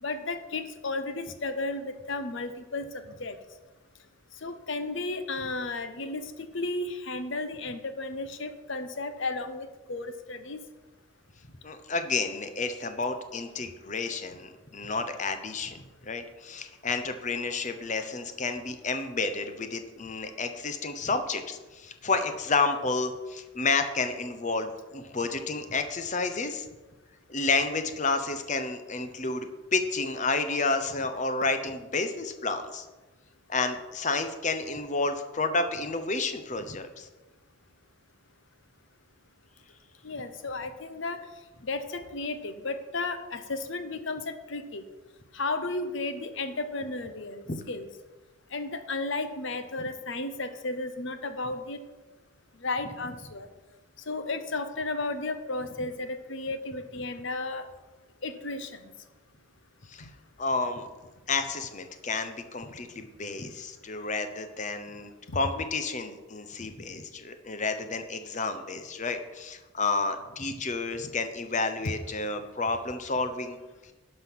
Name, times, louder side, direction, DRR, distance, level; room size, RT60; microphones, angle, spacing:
voice 1, 0.0-3.4 4.4-10.6 40.0-41.2 41.6-44.8 45.3-47.9 48.5-51.8 52.6-53.5 54.1-57.6 58.2-58.9 65.3-65.4, left 3 dB, 65° left, 9 dB, 0.9 m, -34 dB
voice 2, 11.6-26.7 27.3-32.9 33.5-37.1 59.9-60.1 60.4-60.9 61.3-73.6, left 3 dB, 35° left, 8 dB, 0.8 m, -30 dB
11.5 x 5.5 x 6.2 m, 1.2 s
head